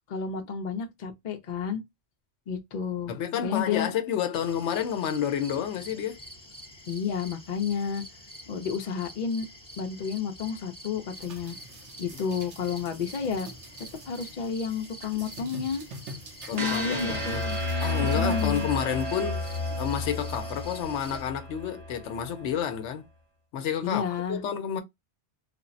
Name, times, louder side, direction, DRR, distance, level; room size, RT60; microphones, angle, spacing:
voice 1, 0.1-1.8 2.5-3.1 3.4-3.9 6.9-8.0 8.5-9.5 9.8-11.6 12.0-13.5 14.0-15.8 16.5-17.6 18.0-18.7 23.8-24.4, left 6 dB, 50° left, 0.6 m, -31 dB
voice 2, 3.1-6.2 12.2-12.4 16.5-17.4 17.8-19.4 19.8-23.0 23.5-24.8, left 9 dB, 85° left, 0.9 m, -30 dB
sound 1, 4.3-21.2, equal, 5° left, 0.6 m, -47 dB
sound 2, 11.1-21.2, right 2 dB, 85° right, 1.1 m, -47 dB
sound 3, 16.6-22.6, left 1 dB, 35° right, 0.6 m, -31 dB
3.3 x 2.0 x 2.5 m
omnidirectional pair, 1.2 m